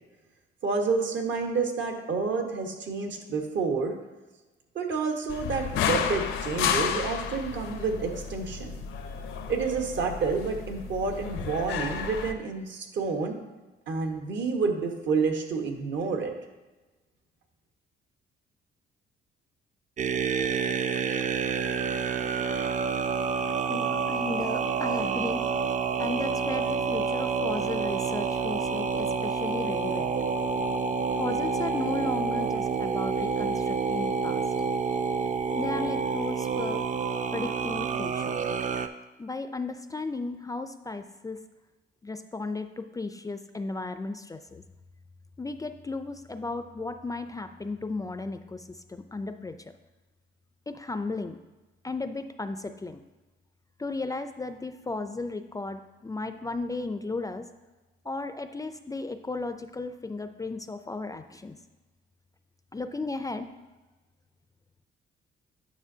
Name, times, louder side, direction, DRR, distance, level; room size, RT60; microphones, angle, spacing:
voice 1, 0.6-3.9 4.7-8.8 9.5-13.4 13.9-16.3, right 4 dB, 70° right, 4 dB, 1.2 m, -29 dB
sound 1, 5.3-12.3, left 7 dB, 85° left, 0.6 m, -32 dB
sound 2, 20.0-38.9, right 5 dB, 40° right, 0.5 m, -28 dB
voice 2, 23.7-25.4 26.0-30.1 31.1-34.4 35.6-36.8 37.3-38.4 39.2-41.4 42.0-44.6 45.4-49.7 50.7-51.4 51.8-53.0 53.8-57.5 58.0-61.6 62.7-63.5, left 3 dB, 15° left, 9 dB, 0.4 m, -35 dB
9.4 x 6.0 x 2.7 m, 1.2 s
cardioid pair, 90°, 20 cm